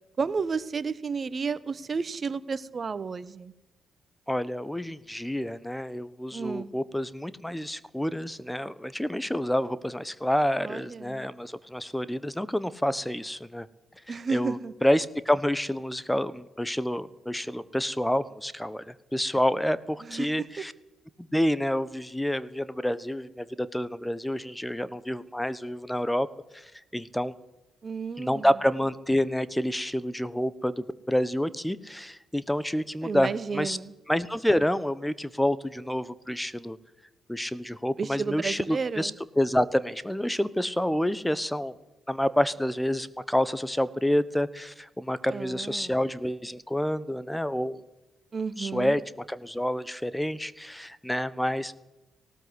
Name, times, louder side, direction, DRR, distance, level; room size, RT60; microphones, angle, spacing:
voice 1, 0.2-3.5 6.3-6.7 10.6-11.3 14.1-14.7 20.0-20.3 27.8-28.5 33.0-33.9 38.0-39.1 45.3-46.0 48.3-49.0, right 5 dB, 45° right, 17 dB, 1.2 m, -32 dB
voice 2, 4.3-13.7 14.1-20.7 21.2-26.3 26.5-27.3 28.2-33.8 34.1-36.8 37.3-39.1 39.4-41.7 42.1-47.8 48.6-49.0 49.3-51.7, equal, 5° left, 17 dB, 1.2 m, -28 dB
18.5 x 17.5 x 8.1 m, 0.96 s
hypercardioid pair, 45°, 0 cm